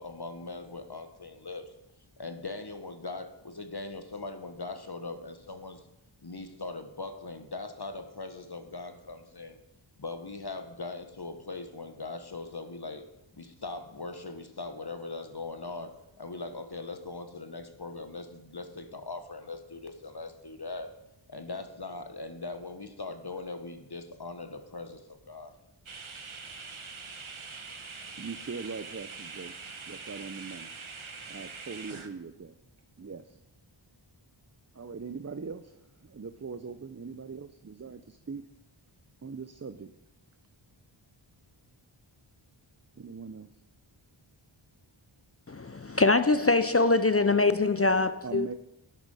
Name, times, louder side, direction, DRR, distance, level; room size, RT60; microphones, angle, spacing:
voice 1, 0.0-1.7 2.2-5.9 6.2-9.6 10.0-13.0 13.3-20.9 21.3-25.5, left 3 dB, 50° left, 1.5 m, -40 dB
sound 1, 25.9-32.1, right 4 dB, 70° right, 1.3 m, -43 dB
voice 2, 28.2-29.6 29.9-30.7 31.3-32.6 33.0-33.4 34.7-38.4 39.2-39.9 43.0-43.5 48.2-48.5, right 5 dB, 30° right, 0.6 m, -41 dB
voice 3, 45.5-48.5, left 3 dB, 30° left, 0.5 m, -23 dB
11.5 x 10.5 x 5.6 m
wide cardioid pair, 50°, 49 cm